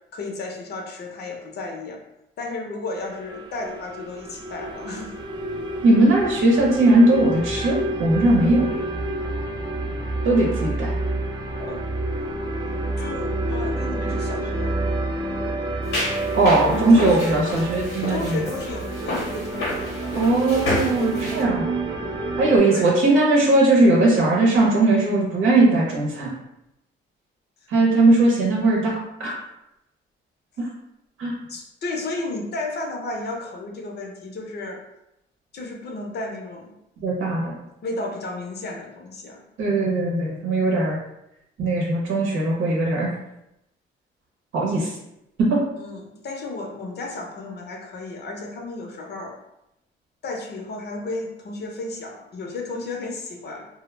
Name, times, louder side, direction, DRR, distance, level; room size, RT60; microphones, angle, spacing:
voice 1, 0.1-2.0 2.4-5.2 11.6-11.8 13.0-14.8 16.6-17.4 18.1-20.2 22.7-22.9 31.5-34.8 35.5-36.7 37.8-39.4 45.8-49.4 50.2-53.7, left 2 dB, 55° left, 1 dB, 0.6 m, -33 dB
sound 1, 2.9-22.6, right 2 dB, 25° right, 0.4 m, -29 dB
voice 2, 5.8-8.7 10.2-10.9 16.3-18.4 20.2-21.6 22.4-26.3 27.7-29.3 30.6-30.7 31.2-31.3 37.0-37.5 39.6-41.0 41.6-43.1 44.5-44.9 45.4-45.6, right 2 dB, 80° right, -3 dB, 0.8 m, -19 dB
sound 2, 15.8-21.4, left 1 dB, 90° left, 0.8 m, -30 dB
2.2 x 2.0 x 3.1 m, 0.85 s
cardioid pair, 90°, 20 cm